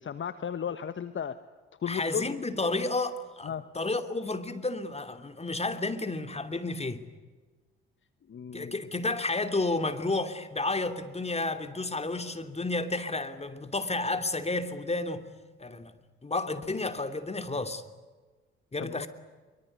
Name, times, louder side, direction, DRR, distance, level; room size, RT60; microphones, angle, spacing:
voice 1, 0.0-1.4 1.8-2.3 3.4-3.7 8.3-8.8 18.8-19.1, left 7 dB, 40° left, 12 dB, 1.3 m, -35 dB
voice 2, 1.9-7.0 8.5-15.2 15.6-15.9 16.2-17.8 18.7-19.1, left 2 dB, 20° left, 9 dB, 2.9 m, -31 dB
24.0 x 24.0 x 9.8 m, 1.3 s
hypercardioid pair, 45°, 30 cm